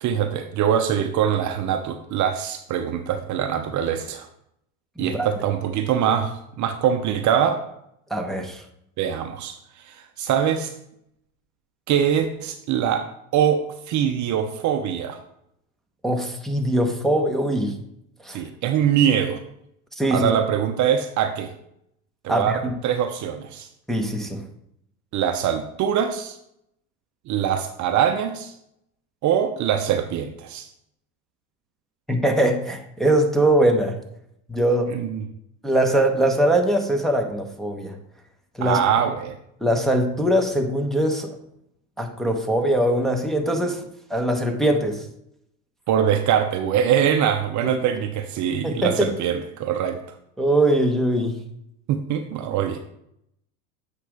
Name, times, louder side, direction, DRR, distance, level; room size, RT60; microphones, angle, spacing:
voice 1, 0.0-4.3 5.0-7.6 9.0-10.7 11.9-13.1 13.3-15.2 18.3-19.4 20.1-21.5 22.2-23.7 25.1-26.4 27.3-28.5 29.2-30.7 34.9-35.3 38.6-39.4 45.9-50.0 51.9-52.8, right 9 dB, 40° right, 7 dB, 0.7 m, -23 dB
voice 2, 5.0-5.3 8.1-8.6 16.0-17.7 18.2-18.4 20.0-20.3 22.3-22.7 23.9-24.4 32.1-34.0 34.5-34.9 35.6-37.9 38.6-38.8 39.6-41.3 42.0-43.8 44.1-45.0 47.6-47.8 48.6-49.1 50.4-51.4, right 1 dB, ahead, 1 dB, 1.0 m, -22 dB
8.2 x 5.0 x 3.5 m, 0.75 s
hypercardioid pair, 95°, 45 cm